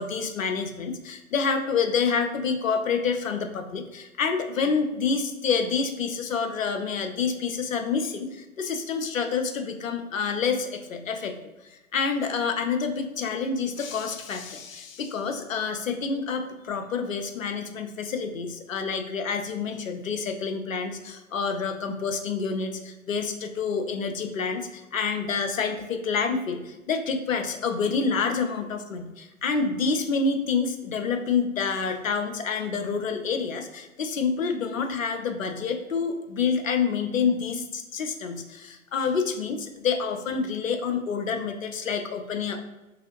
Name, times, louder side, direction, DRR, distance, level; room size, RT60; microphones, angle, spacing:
voice 1, 0.0-11.4 11.7-42.6, left 5 dB, 70° left, 6 dB, 0.6 m, -28 dB
3.1 x 2.4 x 2.9 m, 1.0 s
figure-of-eight pair, 135°, 42 cm